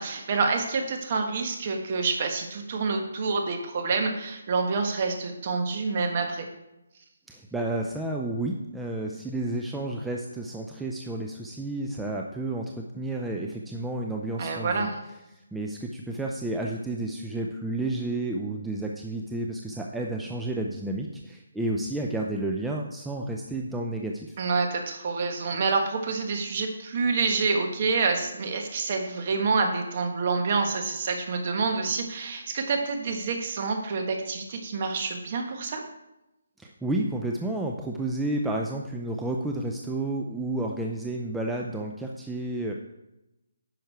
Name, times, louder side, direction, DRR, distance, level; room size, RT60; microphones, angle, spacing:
voice 1, 0.0-6.5 14.4-15.0 24.4-35.8, right 4 dB, 35° right, 4 dB, 1.4 m, -27 dB
voice 2, 7.3-14.9 15.5-24.4 36.6-42.7, right 2 dB, 5° right, -1 dB, 0.5 m, -31 dB
10.5 x 6.3 x 4.6 m, 0.93 s
hypercardioid pair, 165°, 0 cm